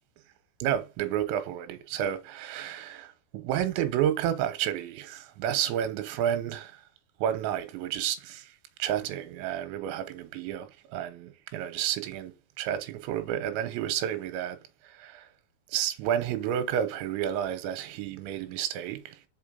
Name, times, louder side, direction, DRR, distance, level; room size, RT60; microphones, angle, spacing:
voice 1, 0.6-3.1 3.3-6.7 7.2-8.5 8.8-14.6 15.0-15.2 15.7-19.2, right 10 dB, 85° right, 3.2 m, -30 dB
5.6 x 5.2 x 5.5 m
omnidirectional pair, 5.3 m